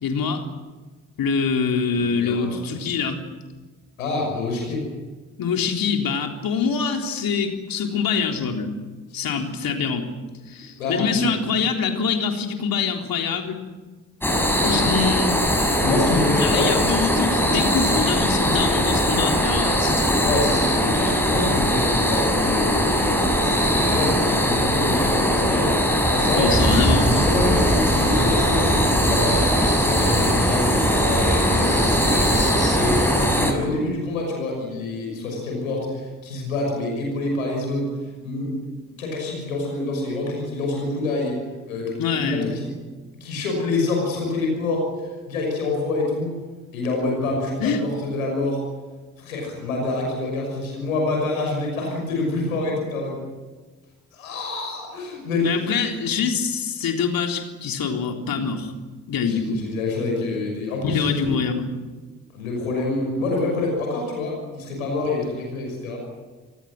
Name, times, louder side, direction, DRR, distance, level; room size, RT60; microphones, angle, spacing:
voice 1, 0.0-0.5 1.2-3.3 5.4-8.7 9.1-10.1 10.5-13.6 14.6-15.4 16.2-20.2 21.5-21.6 26.3-27.2 42.0-42.5 47.6-47.8 55.4-58.7 59.1-59.6 60.8-61.7, left 5 dB, 55° left, 3 dB, 3.8 m, -25 dB
voice 2, 1.9-2.6 4.0-4.9 9.1-9.4 10.5-11.3 15.8-16.8 20.2-25.8 26.1-26.5 27.1-33.0 33.3-37.9 38.2-38.5 38.9-41.4 41.7-42.7 43.1-46.4 46.7-48.6 49.2-53.2 54.1-55.8 59.2-61.4 62.3-66.0, left 2 dB, 85° left, 0 dB, 6.1 m, -27 dB
sound 1, 14.2-33.5, equal, 5° left, 6.9 m, -21 dB
sound 2, 26.5-33.4, right 1 dB, 20° right, 5.0 m, -24 dB
30.0 x 19.5 x 7.8 m, 1.3 s
figure-of-eight pair, 40°, 40 cm